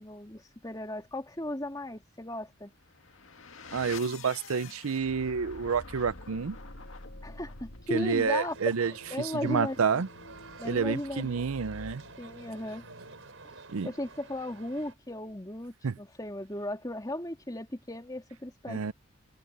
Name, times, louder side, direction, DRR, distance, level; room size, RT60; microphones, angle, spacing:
voice 1, 0.0-2.7 7.2-10.0 10.6-11.5 12.2-12.8 13.4-13.6 13.8-18.9, left 1 dB, 15° left, 2.6 m, -36 dB
sound 1, 2.8-13.5, left 3 dB, 70° left, 2.0 m, -48 dB
voice 2, 3.7-6.6 7.9-8.9 9.2-10.1 10.6-12.0 13.7-13.9 15.8-15.9 18.7-18.9, right 5 dB, 85° right, 0.6 m, -29 dB
sound 2, 8.0-14.9, right 3 dB, 65° right, 5.8 m, -50 dB
head